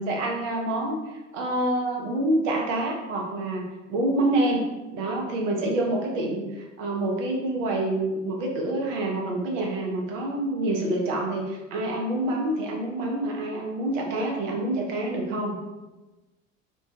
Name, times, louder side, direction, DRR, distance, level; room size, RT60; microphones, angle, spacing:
voice 1, 0.0-4.6 4.9-15.6, right 1 dB, 70° right, 0 dB, 0.6 m, -27 dB
2.2 x 2.2 x 2.5 m, 1.1 s
figure-of-eight pair, 55°, 39 cm